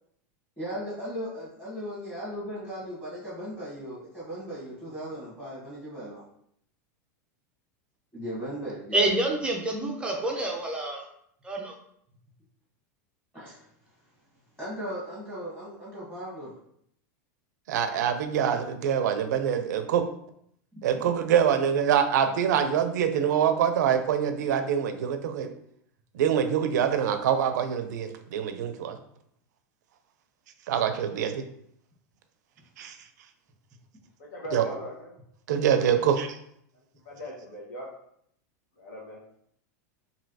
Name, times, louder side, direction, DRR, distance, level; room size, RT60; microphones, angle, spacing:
voice 1, 0.6-6.2 8.1-9.1 13.3-13.6 14.6-16.5 20.7-20.8, equal, 5° left, -8 dB, 1.1 m, -37 dB
voice 2, 8.9-11.0 11.4-11.7, right 2 dB, 10° right, 0 dB, 0.4 m, -27 dB
voice 3, 17.7-20.1 20.8-25.5 26.1-29.0 30.7-31.5 32.8-33.0 34.5-34.6 35.5-36.4, right 8 dB, 80° right, 8 dB, 0.4 m, -25 dB
voice 4, 34.2-35.1 37.0-37.9 38.8-39.2, left 1 dB, 80° left, -2 dB, 1.1 m, -39 dB
3.2 x 2.7 x 2.6 m, 0.70 s
supercardioid pair, 145°, 9 cm